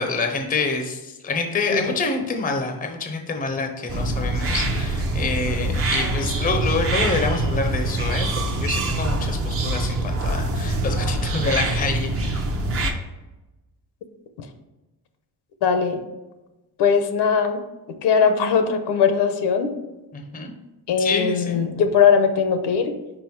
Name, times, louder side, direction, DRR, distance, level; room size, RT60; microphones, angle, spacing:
voice 1, 0.0-12.4 20.1-20.5 21.0-21.6, left 3 dB, 20° left, 4 dB, 0.6 m, -27 dB
sound 1, 3.9-12.9, right 2 dB, 35° right, 0.7 m, -24 dB
voice 2, 15.6-16.0 16.8-17.6 18.0-19.7 20.9-22.9, left 6 dB, 75° left, 8 dB, 0.9 m, -20 dB
5.5 x 4.8 x 4.5 m, 1.1 s
cardioid pair, 165°, 41 cm